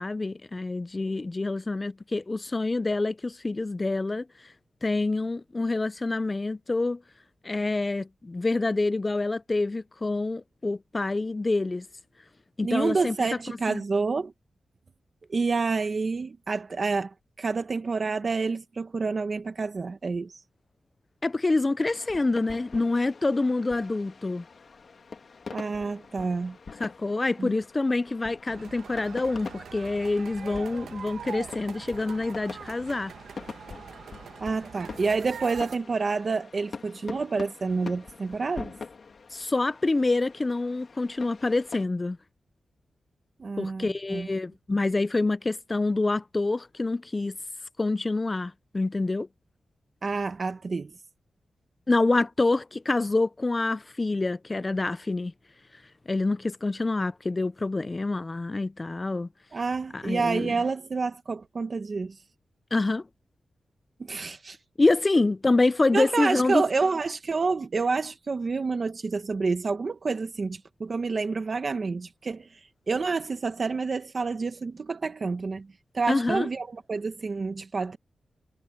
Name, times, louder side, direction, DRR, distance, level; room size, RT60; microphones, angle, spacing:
voice 1, 0.0-4.3 4.8-7.0 7.4-11.9 12.6-13.2 13.7-13.8 21.2-24.5 26.8-33.1 39.3-42.2 43.6-47.4 47.8-49.3 51.9-55.3 56.1-59.3 59.9-60.5 62.7-63.1 64.8-66.6 76.1-76.5, left 2 dB, 20° left, 0.3 m, -26 dB
voice 2, 12.6-14.3 15.3-20.3 25.5-26.6 27.4-27.5 34.4-38.7 43.4-44.3 50.0-50.9 59.5-62.2 64.0-64.6 65.9-75.7 75.9-78.0, right 4 dB, 40° right, 0.9 m, -28 dB
sound 1, 21.9-41.9, left 4 dB, 50° left, 2.4 m, -44 dB
sound 2, 28.5-35.8, right 7 dB, 90° right, 1.2 m, -43 dB
wide cardioid pair, 165°, 0 cm